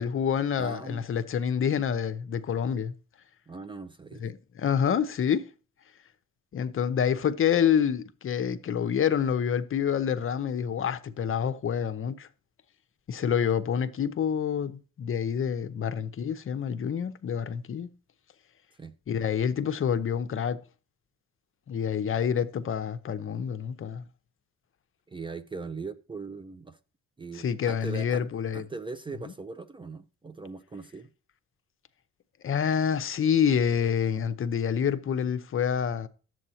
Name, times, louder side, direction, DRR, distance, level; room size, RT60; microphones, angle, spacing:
voice 1, 0.0-2.9 4.2-5.5 6.5-12.3 13.1-17.9 19.1-20.6 21.7-24.0 27.3-28.6 32.4-36.1, left 8 dB, 45° left, 0.7 m, -27 dB
voice 2, 0.6-1.1 3.5-4.2 18.8-18.9 25.1-26.8 27.2-28.2 28.5-31.1, right 4 dB, 15° right, 0.4 m, -40 dB
11.0 x 7.7 x 2.8 m
cardioid pair, 90°, 30 cm